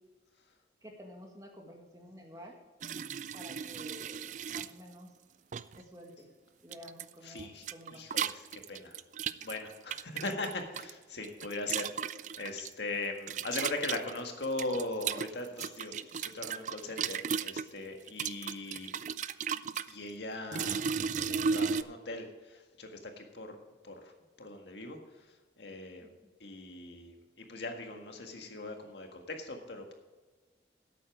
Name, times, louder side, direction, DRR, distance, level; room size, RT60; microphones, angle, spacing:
voice 1, 0.8-2.6 3.3-5.1 5.8-6.3 6.6-8.1 26.0-26.3, equal, 20° right, 1 dB, 1.8 m, -51 dB
sound 1, 2.8-4.7 5.5-5.8 6.7-7.1 7.4-10.9 11.2-12.7 13.3-17.7 18.1-19.9 20.5-21.8, right 6 dB, 40° right, 0.3 m, -35 dB
voice 2, 7.2-9.0 9.4-18.9 19.9-20.8 21.1-23.6 23.8-24.1 24.4-25.0 25.6-26.1 26.4-29.9, left 2 dB, 70° left, 4 dB, 1.7 m, -40 dB
12.0 x 8.5 x 4.8 m, 1.3 s
head